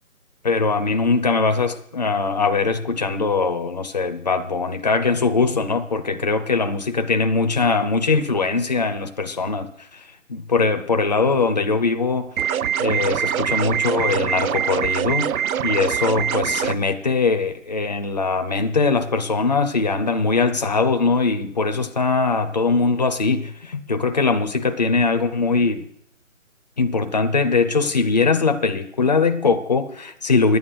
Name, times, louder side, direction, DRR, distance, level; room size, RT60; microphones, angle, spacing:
voice 1, 0.4-12.3 12.8-15.3 15.6-25.9 26.8-30.6, left 4 dB, 30° left, 0.6 m, -21 dB
sound 1, 12.4-16.8, right 9 dB, 90° right, 0.5 m, -23 dB
11.0 x 9.5 x 6.5 m
figure-of-eight pair, 155°, 41 cm